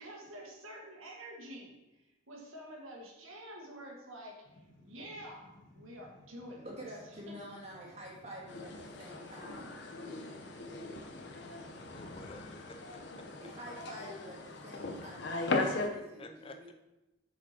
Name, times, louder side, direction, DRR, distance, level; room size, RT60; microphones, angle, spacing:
voice 1, 0.0-4.4 4.8-6.7 7.3-7.4, equal, 80° right, 1.7 m, -49 dB
sound 1, 4.4-12.8, left 1 dB, 85° left, 2.2 m, -59 dB
voice 2, 6.6-9.7 13.4-16.7, equal, 30° right, 1.8 m, -48 dB
sound 2, 8.5-15.9, left 3 dB, 55° left, 0.8 m, -38 dB
voice 3, 11.9-13.3 16.2-16.7, left 2 dB, 25° left, 0.4 m, -51 dB
7.2 x 5.0 x 4.3 m
head